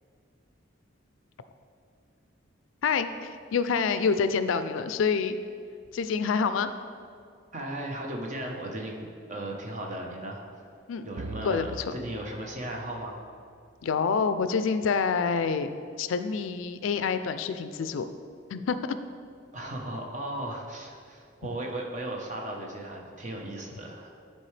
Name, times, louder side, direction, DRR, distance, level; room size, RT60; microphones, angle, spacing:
voice 1, 2.8-5.4 5.9-6.7 10.9-11.1 11.4-11.6 13.8-15.7 16.0-18.0 18.5-19.0, left 5 dB, 85° left, 11 dB, 0.4 m, -27 dB
voice 2, 7.5-10.4 11.0-13.2 19.5-24.1, right 1 dB, 40° right, 0 dB, 0.9 m, -36 dB
sound 1, 11.2-13.8, right 2 dB, 65° right, 0.5 m, -44 dB
10.0 x 4.5 x 3.3 m, 2.3 s
head